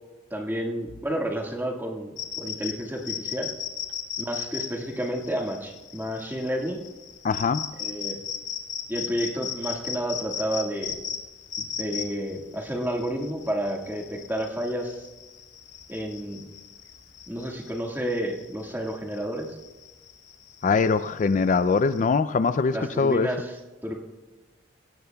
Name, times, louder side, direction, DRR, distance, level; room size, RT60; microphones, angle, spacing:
voice 1, 0.3-3.5 4.2-6.8 7.8-8.2 8.9-11.0 11.6-15.1 15.9-16.5 17.3-19.6 22.7-23.9, equal, 10° right, 0 dB, 1.7 m, -31 dB
sound 1, 2.2-22.1, left 8 dB, 75° left, 1.5 m, -37 dB
voice 2, 7.2-7.6 20.6-23.3, left 4 dB, 40° left, 13 dB, 0.3 m, -22 dB
22.5 x 17.5 x 2.3 m, 1.2 s
head